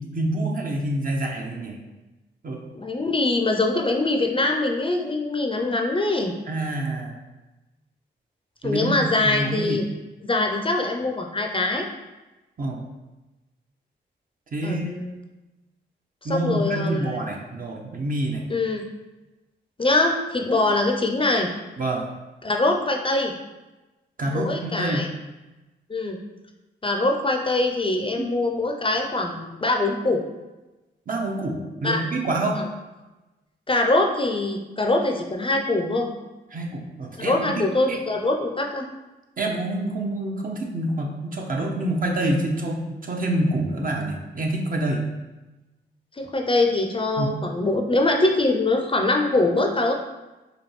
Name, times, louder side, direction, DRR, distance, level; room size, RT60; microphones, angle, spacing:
voice 1, 0.0-1.8 2.4-2.6 6.5-7.1 8.6-9.8 12.6-12.8 14.5-15.0 16.2-18.4 21.8-22.1 24.2-25.0 28.2-28.3 31.1-32.6 36.5-37.4 39.4-45.0 47.2-47.3, right 1 dB, 45° right, 0 dB, 0.8 m, -27 dB
voice 2, 2.7-6.3 8.6-9.8 10.2-11.9 14.6-15.2 16.2-17.2 18.5-18.8 19.8-21.5 22.4-23.3 24.3-25.1 25.9-26.2 26.8-30.2 31.8-32.0 32.5-32.6 33.7-36.1 37.2-38.8 46.2-49.9, left 2 dB, 25° left, 3 dB, 0.5 m, -23 dB
5.0 x 2.2 x 3.2 m, 1.1 s
cardioid pair, 60°, 20 cm